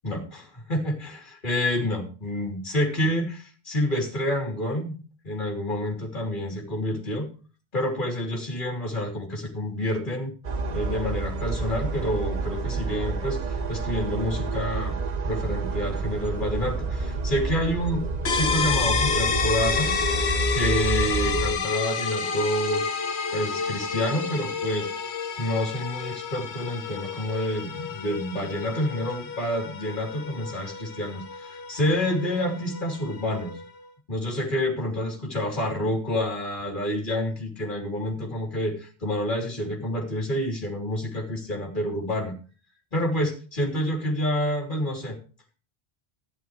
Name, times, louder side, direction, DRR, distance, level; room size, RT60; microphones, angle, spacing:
voice 1, 0.0-4.9 5.2-7.3 7.7-10.3 10.7-15.0 15.2-19.9 20.5-22.9 23.3-24.9 25.4-33.6 34.1-42.3 42.9-45.2, left 1 dB, 50° left, 1 dB, 3.4 m, -28 dB
sound 1, 10.4-21.6, right 3 dB, 45° right, 0.9 m, -29 dB
sound 2, 18.3-33.8, left 5 dB, 85° left, 1.4 m, -30 dB
14.0 x 11.0 x 3.2 m, 0.36 s
omnidirectional pair, 1.1 m